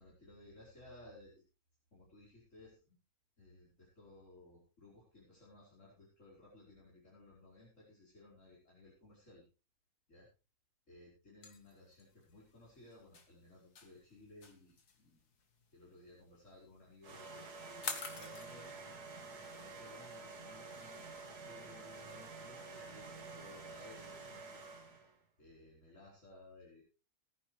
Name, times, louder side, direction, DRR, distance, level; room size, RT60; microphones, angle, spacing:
voice 1, 0.0-1.4 1.9-3.0 3.4-9.4 10.1-10.3 10.9-15.2 15.7-18.8 19.5-24.6 25.4-26.8, left 2 dB, 50° left, -7 dB, 5.2 m, -59 dB
sound 1, 11.4-18.5, left 5 dB, 80° left, 2.2 m, -46 dB
sound 2, 17.0-25.1, right 3 dB, 85° right, 2.4 m, -50 dB
17.5 x 10.5 x 3.3 m, 0.32 s
omnidirectional pair, 1.6 m